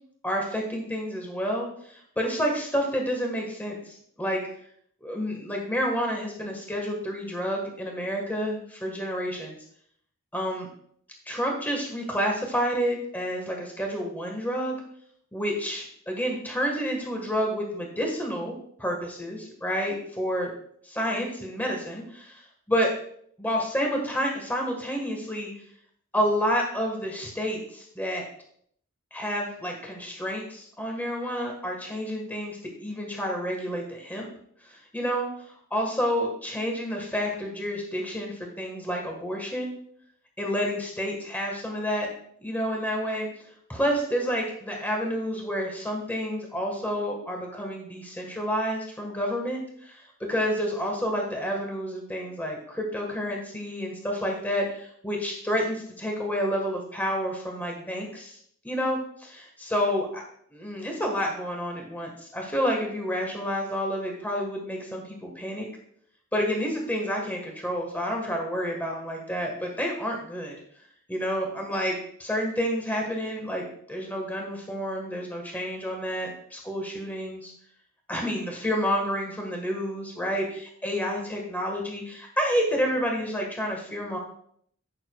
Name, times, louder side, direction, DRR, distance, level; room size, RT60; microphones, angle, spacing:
voice 1, 0.2-4.4 5.0-9.6 10.3-10.7 11.2-14.7 15.3-20.5 20.8-22.9 23.4-25.5 26.1-28.2 29.1-34.3 34.6-35.3 35.7-39.7 40.4-42.1 42.4-43.3 43.7-58.4 58.6-60.2 60.5-65.7 66.3-70.6 71.1-77.5 78.1-84.2, equal, 10° left, 1 dB, 1.4 m, -29 dB
14.0 x 6.6 x 2.3 m, 0.65 s
head